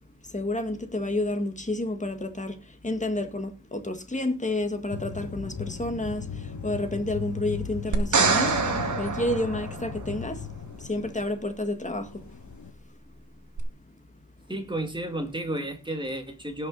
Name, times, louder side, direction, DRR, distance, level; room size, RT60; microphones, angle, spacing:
voice 1, 0.3-2.6 2.8-6.2 6.6-8.5 9.0-10.4 10.9-12.1, left 1 dB, 15° left, 1.7 m, -29 dB
sound 1, 4.9-11.3 12.1-12.7, left 6 dB, 40° left, 1.7 m, -37 dB
sound 2, 7.9-10.2 13.6-13.7, right 4 dB, 40° right, 2.0 m, -25 dB
voice 2, 14.5-16.7, right 1 dB, 10° right, 2.1 m, -32 dB
17.5 x 5.9 x 4.0 m
wide cardioid pair, 130°, 43 cm